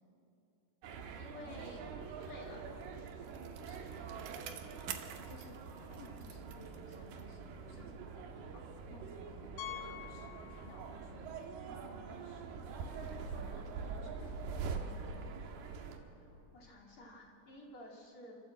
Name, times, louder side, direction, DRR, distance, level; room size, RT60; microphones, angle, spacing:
sound 1, 0.8-16.0, right 5 dB, 85° right, 3.4 m, -45 dB
voice 1, 1.2-2.6 7.8-7.9 8.9-9.1 16.2-18.4, left 1 dB, 35° left, -2 dB, 3.0 m, -53 dB
Bicycle, 2.5-7.4 7.8-7.9, right 9 dB, 70° right, 2.4 m, -50 dB
voice 2, 3.6-3.9 4.8-5.0 5.3-9.5 9.7-14.6, left 3 dB, 60° left, 1 dB, 3.5 m, -58 dB
Piano, 9.6-11.2 11.4-11.6 12.2-12.3 12.5-12.6 14.7-14.8, left 13 dB, 80° left, 1.8 m, -47 dB
28.5 x 12.5 x 7.7 m, 2.8 s
omnidirectional pair, 4.5 m